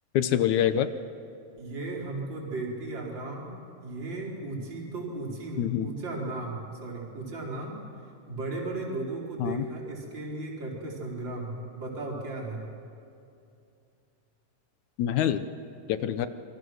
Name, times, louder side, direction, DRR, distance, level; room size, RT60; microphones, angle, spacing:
voice 1, 0.1-0.9 5.6-5.9 9.4-9.6 15.0-15.5 15.9-16.3, left 10 dB, 70° left, 11 dB, 1.9 m, -25 dB
voice 2, 1.6-3.5 3.8-7.7 8.3-12.6, right 2 dB, 30° right, -3 dB, 4.8 m, -35 dB
27.0 x 24.0 x 6.4 m, 2.6 s
omnidirectional pair, 4.0 m